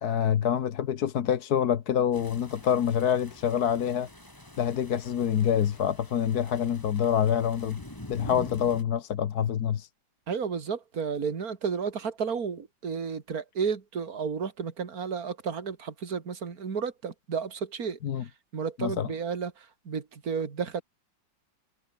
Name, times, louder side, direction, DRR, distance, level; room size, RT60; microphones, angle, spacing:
voice 1, 0.0-4.1 4.6-7.8 8.1-9.9 18.0-18.2 18.8-19.1, left 9 dB, 55° left, 1.5 m, -26 dB
sound 1, 2.1-8.8, left 1 dB, 10° left, 3.0 m, -46 dB
voice 2, 10.3-20.8, right 6 dB, 50° right, 2.7 m, -32 dB
omnidirectional pair, 2.1 m